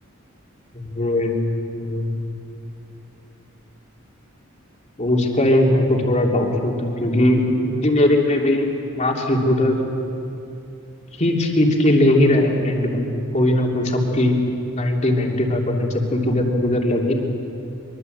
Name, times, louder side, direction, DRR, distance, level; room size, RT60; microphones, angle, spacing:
voice 1, 0.7-1.4 1.8-2.2 5.0-8.7 9.0-9.8 11.2-14.4 14.7-17.1, left 1 dB, 35° left, 1 dB, 3.0 m, -19 dB
23.5 x 23.5 x 8.1 m, 2.7 s
head